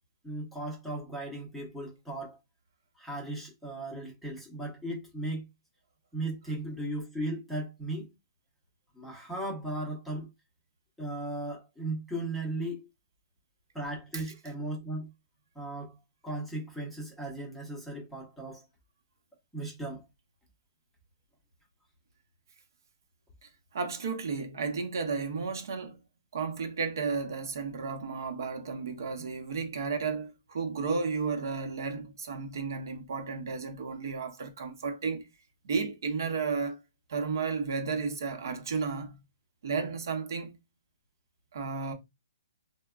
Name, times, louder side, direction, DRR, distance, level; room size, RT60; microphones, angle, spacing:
voice 1, 0.2-2.4 3.0-5.4 6.1-8.1 8.9-10.3 11.0-12.9 13.7-15.1 15.5-16.0 16.2-18.7 19.5-20.1, right 1 dB, ahead, 0.8 m, -36 dB
voice 2, 23.4-26.0 26.3-35.3 35.6-36.8 37.1-39.2 39.6-40.6 41.5-41.9, right 5 dB, 60° right, 0.9 m, -33 dB
3.3 x 2.1 x 2.4 m
hypercardioid pair, 165°, 2 cm